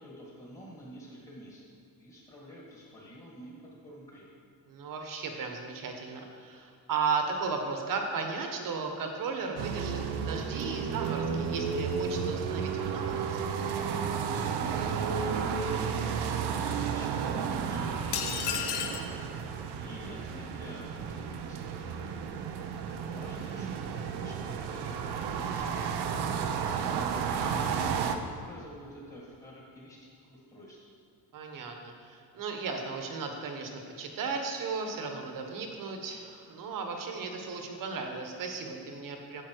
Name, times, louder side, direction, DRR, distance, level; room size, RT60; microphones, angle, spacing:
voice 1, 0.0-1.6 2.0-3.5 3.8-4.3 14.6-19.2 19.8-22.4 22.8-26.5 27.1-30.8, equal, 20° left, -5 dB, 1.9 m, -48 dB
voice 2, 4.7-13.4 22.6-23.0 31.3-39.4, right 4 dB, 55° right, 3 dB, 1.3 m, -35 dB
sound 1, 9.6-28.2, right 6 dB, 85° right, 0.8 m, -32 dB
sound 2, 18.1-19.1, left 9 dB, 80° left, 0.8 m, -32 dB
9.7 x 7.2 x 4.6 m, 2.4 s
cardioid pair, 130°, 39 cm